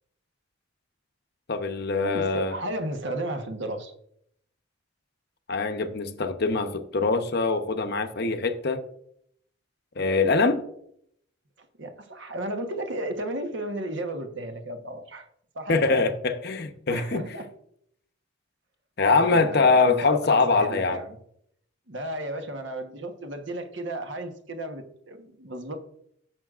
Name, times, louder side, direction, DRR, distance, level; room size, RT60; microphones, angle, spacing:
voice 1, 1.5-2.5 5.5-8.8 10.0-10.6 15.7-17.3 19.0-21.0, left 3 dB, 50° left, 0.7 m, -23 dB
voice 2, 2.0-3.9 11.6-15.3 15.5-16.1 16.9-17.5 19.1-21.2 21.9-25.8, right 1 dB, 55° right, 1.1 m, -34 dB
15.5 x 6.3 x 2.4 m
head